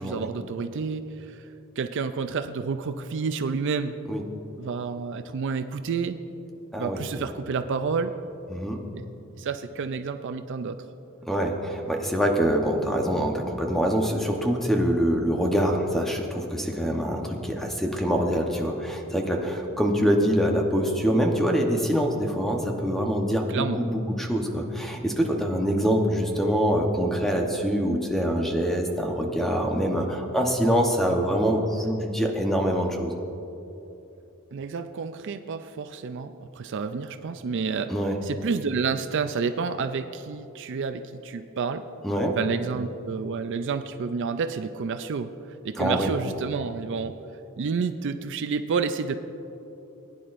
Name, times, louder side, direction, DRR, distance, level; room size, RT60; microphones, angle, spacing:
voice 1, 0.0-1.5 1.8-3.9 4.6-6.2 6.8-8.1 9.0-9.1 9.4-10.8 23.5-23.8 34.5-37.9 38.2-41.8 42.4-45.3 45.6-47.1 47.6-49.2, right 5 dB, 55° right, 9 dB, 0.4 m, -29 dB
voice 2, 6.7-7.2 8.5-8.8 11.2-33.1 37.9-38.2 42.0-42.3 45.8-46.1, equal, ahead, 1 dB, 0.9 m, -25 dB
19.5 x 10.0 x 2.5 m, 2.9 s
head